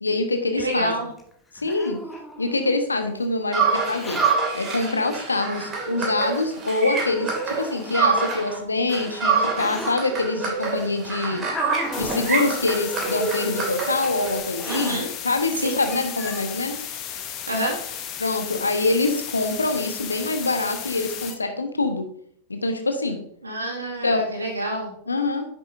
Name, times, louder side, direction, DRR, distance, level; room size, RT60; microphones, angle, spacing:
voice 1, 0.0-0.9 1.5-2.0 2.4-4.2 4.5-11.4 12.0-16.8 18.2-22.1 22.5-23.2 24.0-24.2 25.1-25.4, left 2 dB, 80° left, 6 dB, 1.1 m, -25 dB
voice 2, 0.6-1.1 14.7-15.1 15.6-15.8 17.5-17.8 23.4-24.9, right 1 dB, 80° right, -1 dB, 2.3 m, -27 dB
Hiss, 1.2-2.8 3.8-4.4 5.3-5.4 6.2-6.3 6.9-7.9 8.7-10.0 10.8-12.3 12.9-13.3 13.9-14.1 14.6-15.0 15.5-15.6 15.8-16.5, left 1 dB, 10° left, 1.3 m, -36 dB
sound 1, 3.5-8.6 8.9-14.4, right 5 dB, 30° right, 2.4 m, -26 dB
sound 2, 11.9-21.3, left 9 dB, 35° left, 1.1 m, -34 dB
10.0 x 6.8 x 2.7 m, 0.67 s
figure-of-eight pair, 90°, 0 cm